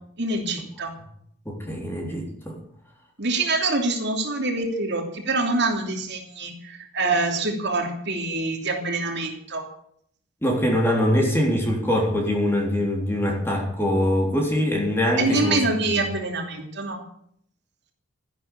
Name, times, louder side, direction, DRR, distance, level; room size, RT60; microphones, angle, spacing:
voice 1, 0.2-0.9 3.2-9.6 15.2-17.0, right 2 dB, 50° right, 2 dB, 3.0 m, -25 dB
voice 2, 1.5-2.6 10.4-15.6 15.9-16.0, left 1 dB, 10° left, 0 dB, 3.5 m, -23 dB
14.5 x 11.0 x 8.7 m, 0.67 s
head